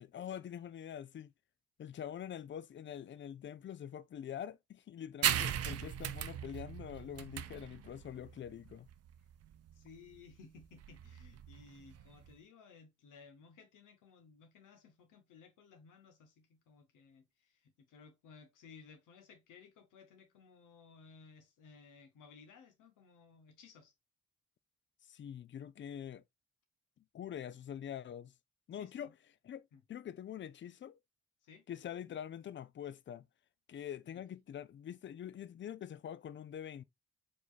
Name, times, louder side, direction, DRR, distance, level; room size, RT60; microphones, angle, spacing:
voice 1, 0.0-1.3 1.8-8.9 25.1-26.2 27.1-28.3 28.7-29.1 29.4-31.0 31.7-33.2 33.7-36.8, left 9 dB, 40° left, 0.4 m, -45 dB
sound 1, 5.2-12.3, right 10 dB, 55° right, 0.5 m, -38 dB
voice 2, 9.7-23.9 28.7-29.1 29.7-29.8 31.4-31.7 34.1-34.2, left 5 dB, 85° left, 0.9 m, -59 dB
4.2 x 3.1 x 2.4 m
supercardioid pair, 45°, 31 cm